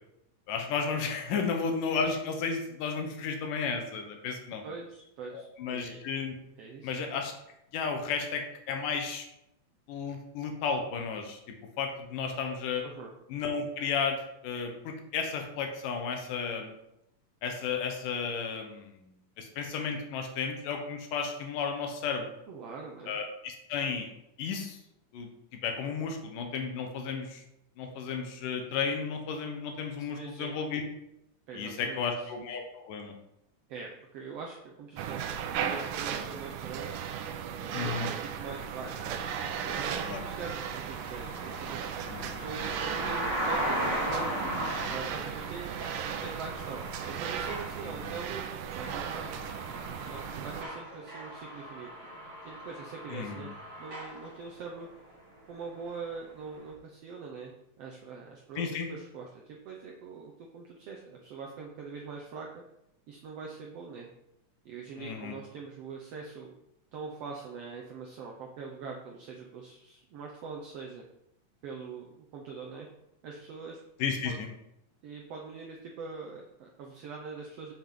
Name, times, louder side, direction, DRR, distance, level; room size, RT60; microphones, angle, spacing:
voice 1, 0.5-4.6 5.3-6.3 6.8-7.3 7.7-9.2 9.9-11.4 11.8-12.8 13.3-16.7 17.4-18.9 19.4-22.3 23.1-24.1 24.4-24.8 25.1-25.3 25.6-27.4 27.8-30.8 31.5-33.1 37.7-38.1 40.1-40.2 42.1-42.3 48.0-48.1 53.1-53.4 58.6-58.9 65.0-65.3 74.0-74.5, left 5 dB, 90° left, 4 dB, 2.7 m, -33 dB
voice 2, 4.6-6.0 6.6-6.9 12.8-13.1 22.5-23.2 30.0-30.5 31.5-32.3 33.7-37.0 37.6-39.2 39.6-41.8 42.2-44.4 44.9-45.7 46.1-48.4 48.7-49.3 49.7-51.9 52.4-53.5 53.8-54.9 55.5-57.5 57.8-62.6 63.1-64.1 64.6-66.5 66.9-71.0 71.6-72.9 73.2-73.8 74.2-74.4 75.0-77.7, right 5 dB, 65° right, -1 dB, 1.6 m, -43 dB
sound 1, 35.0-50.6, right 8 dB, 85° right, 2.2 m, -36 dB
sound 2, 38.5-55.2 55.4-55.9 56.7-56.8, equal, 35° right, 2.7 m, -38 dB
7.7 x 7.5 x 3.8 m, 0.82 s
omnidirectional pair, 3.7 m